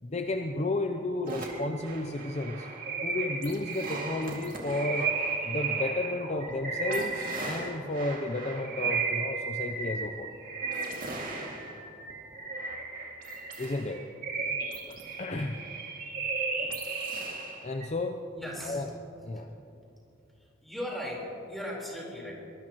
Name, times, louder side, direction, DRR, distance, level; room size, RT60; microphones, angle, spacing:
voice 1, 0.0-2.7 3.0-5.1 5.4-10.3 13.6-14.1 14.9-15.7 16.6-16.7 17.1-17.3 17.6-18.3 18.6-18.9 19.2-19.6, left 2 dB, 35° left, 5 dB, 0.6 m, -33 dB
sound 1, 1.3-17.9, right 4 dB, 45° right, 2.2 m, -34 dB
voice 2, 18.3-18.9 19.6-19.7 20.4-22.3, equal, ahead, -5 dB, 4.1 m, -38 dB
24.0 x 19.5 x 3.0 m, 2.7 s
head